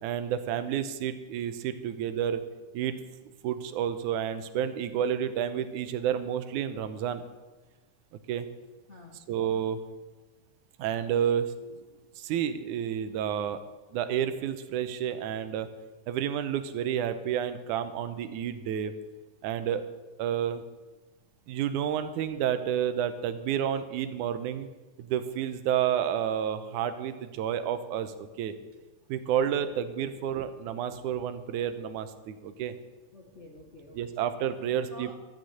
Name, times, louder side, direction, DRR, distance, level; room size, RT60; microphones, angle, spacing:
voice 1, 0.0-2.4 2.7-2.9 3.4-7.2 8.3-8.5 9.3-9.8 10.8-11.5 12.2-13.6 13.9-15.7 16.1-18.9 19.4-19.8 20.2-20.6 21.5-24.7 25.0-28.5 29.1-32.7 33.9-35.1, right 9 dB, 85° right, 10 dB, 2.2 m, -30 dB
voice 2, 8.9-9.2 28.7-28.8 30.9-31.1 33.1-34.2 34.6-35.1, equal, 50° left, -1 dB, 0.8 m, -49 dB
13.5 x 6.3 x 8.8 m, 1.2 s
omnidirectional pair, 3.5 m